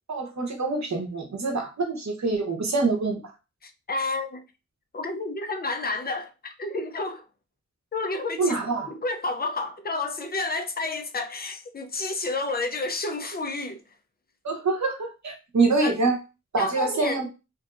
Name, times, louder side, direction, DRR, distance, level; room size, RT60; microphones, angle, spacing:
voice 1, 0.1-3.2 8.4-8.9 14.4-16.1 16.5-17.3, right 3 dB, 65° right, 1.0 m, -25 dB
voice 2, 3.6-4.4 4.9-7.2 7.9-8.6 9.0-13.8 15.8-15.9 16.6-17.2, left 3 dB, 30° left, 0.5 m, -30 dB
3.0 x 2.6 x 2.4 m
wide cardioid pair, 65°, 31 cm